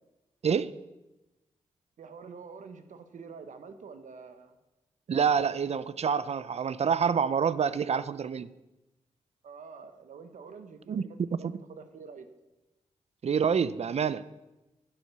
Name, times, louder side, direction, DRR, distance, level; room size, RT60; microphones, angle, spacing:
voice 1, 2.0-4.6 9.4-10.9 11.3-12.3, right 5 dB, 80° right, 9 dB, 1.1 m, -47 dB
voice 2, 5.1-8.5 10.9-11.1 11.4-11.5 13.2-14.2, right 7 dB, 55° right, 16 dB, 0.6 m, -27 dB
11.0 x 7.5 x 6.8 m, 1.0 s
cardioid pair, 60°, 13 cm